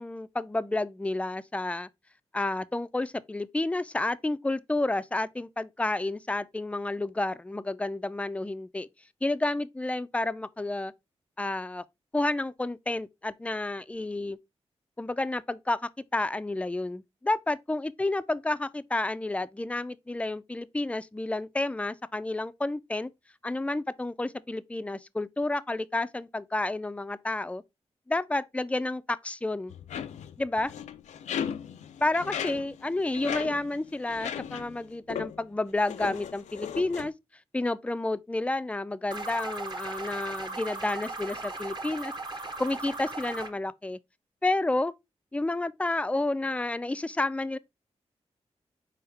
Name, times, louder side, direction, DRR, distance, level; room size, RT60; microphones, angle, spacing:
voice 1, 0.0-1.9 2.3-8.9 9.2-10.9 11.4-11.8 12.1-14.4 15.0-23.1 23.4-27.6 28.1-29.7 30.4-30.7 32.0-37.1 37.5-42.1 42.6-44.0 44.4-44.9 45.3-47.6, left 2 dB, 10° left, 0.4 m, -30 dB
sound 1, 29.7-34.8 35.1-35.4 35.8-37.1, left 8 dB, 90° left, 0.4 m, -37 dB
sound 2, 39.1-43.5, right 3 dB, 40° right, 1.0 m, -37 dB
4.5 x 3.5 x 3.2 m
cardioid pair, 50°, 12 cm